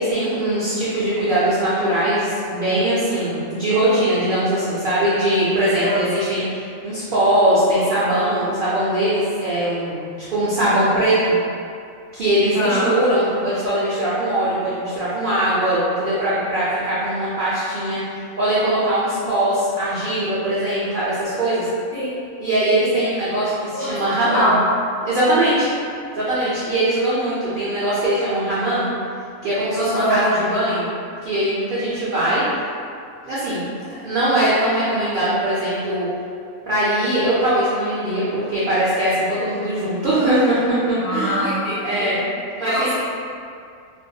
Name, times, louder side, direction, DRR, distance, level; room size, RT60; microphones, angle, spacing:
voice 1, 0.0-11.4 12.1-21.7 22.4-24.6 25.0-25.7 26.2-28.9 29.4-30.9 31.2-32.4 33.2-36.1 36.6-41.4 41.8-42.2 42.6-42.9, right 1 dB, 55° right, -11 dB, 0.5 m, -21 dB
voice 2, 12.5-12.9 21.9-22.1 23.7-24.6 29.8-30.2 41.0-42.2 42.6-42.9, equal, 65° left, -9 dB, 0.5 m, -23 dB
2.5 x 2.2 x 2.6 m, 2.4 s
omnidirectional pair, 1.4 m